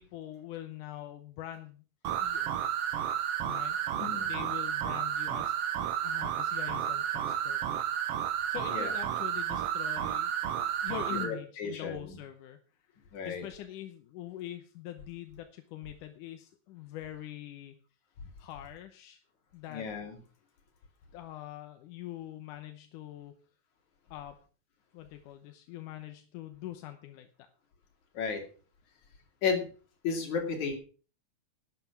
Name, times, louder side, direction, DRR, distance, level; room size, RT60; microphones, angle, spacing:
voice 1, 0.0-1.8 2.2-2.5 3.5-3.8 4.2-5.5 6.0-7.6 8.5-10.3 10.8-12.6 13.3-17.8 18.4-19.2 19.5-19.9 21.1-23.3 24.1-24.4 24.9-27.3, left 12 dB, 90° left, 7 dB, 2.5 m, -43 dB
sound 1, 2.0-11.3, right 10 dB, 65° right, 1.7 m, -32 dB
voice 2, 4.0-4.4 8.7-8.9 11.1-12.2 13.1-13.5 19.7-20.2 28.1-28.4 29.4-29.7 30.0-30.7, left 5 dB, 70° left, 3 dB, 3.9 m, -33 dB
12.0 x 9.0 x 5.8 m, 0.39 s
omnidirectional pair, 3.5 m